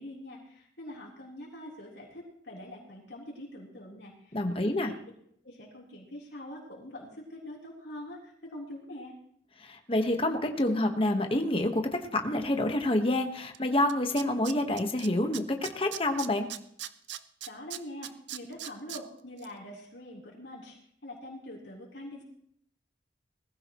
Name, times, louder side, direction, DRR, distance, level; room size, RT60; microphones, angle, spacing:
voice 1, 0.0-4.9 5.4-9.1 17.5-22.2, left 1 dB, 70° left, -3 dB, 3.8 m, -44 dB
voice 2, 4.3-4.9 9.6-16.5, left 1 dB, 30° left, 5 dB, 1.4 m, -28 dB
Tools, 13.5-13.6 13.9-15.1 15.3-19.0 19.4-19.5, right 12 dB, 75° right, 0.7 m, -39 dB
20.5 x 15.0 x 3.1 m, 0.69 s
head